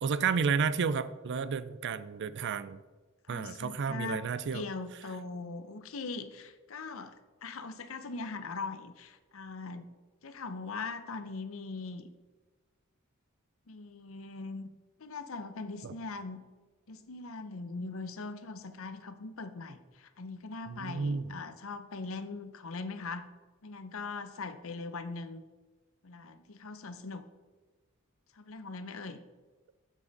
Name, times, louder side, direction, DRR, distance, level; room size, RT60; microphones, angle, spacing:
voice 1, 0.0-2.8 3.3-4.6 15.8-15.9 20.7-21.3, right 5 dB, 55° right, 15 dB, 0.4 m, -31 dB
voice 2, 3.3-4.2 4.5-7.1 7.4-9.9 10.2-12.1 13.7-14.7 15.0-16.4 16.9-23.3 23.6-25.4 26.0-27.2 28.3-29.2, left 3 dB, 70° left, 10 dB, 0.7 m, -41 dB
8.5 x 7.4 x 4.0 m, 1.3 s
head